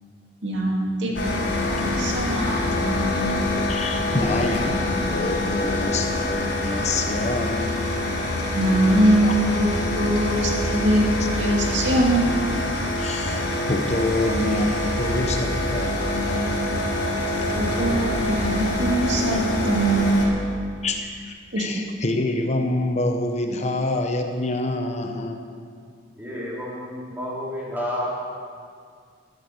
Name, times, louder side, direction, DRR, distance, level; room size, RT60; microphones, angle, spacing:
voice 1, 0.4-3.5 8.5-11.0 11.4-12.3 17.6-20.2 21.5-21.7, right 1 dB, 75° right, -1 dB, 2.4 m, -22 dB
sound 1, 1.1-20.3, left 1 dB, 70° left, 4.9 m, -25 dB
voice 2, 3.7-7.8 9.2-9.3 11.6-11.7 13.0-16.7 17.4-17.5 20.8-25.4, left 2 dB, 40° left, 4 dB, 0.9 m, -27 dB
voice 3, 26.2-28.1, left 1 dB, 10° right, -7 dB, 3.9 m, -30 dB
12.5 x 12.0 x 6.6 m, 2.1 s
head